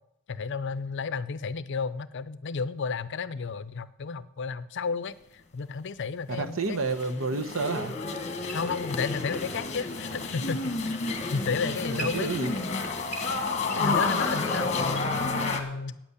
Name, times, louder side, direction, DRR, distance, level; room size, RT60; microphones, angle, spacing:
voice 1, 0.3-5.1 5.5-6.8 7.1-7.2 8.5-11.0 11.3-12.3 13.7-16.0, left 5 dB, 55° left, 15 dB, 0.5 m, -32 dB
voice 2, 6.3-7.9 11.6-12.5, right 3 dB, 65° right, 9 dB, 1.0 m, -30 dB
sound 1, 6.7-15.6, left 3 dB, 30° left, 1.3 m, -30 dB
8.9 x 8.2 x 8.2 m, 0.83 s
head